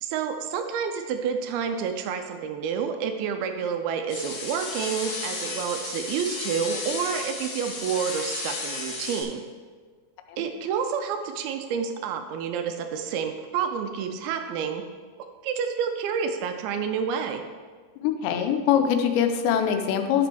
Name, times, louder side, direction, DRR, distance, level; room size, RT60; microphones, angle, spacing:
voice 1, 0.0-9.4 10.4-14.8 15.4-17.4, right 7 dB, 85° right, 6 dB, 2.2 m, -29 dB
sound 1, 4.1-9.2, left 3 dB, 50° left, 2.6 m, -33 dB
voice 2, 18.0-20.3, left 8 dB, 85° left, 6 dB, 2.8 m, -23 dB
12.5 x 5.9 x 3.4 m, 1.5 s
omnidirectional pair, 5.0 m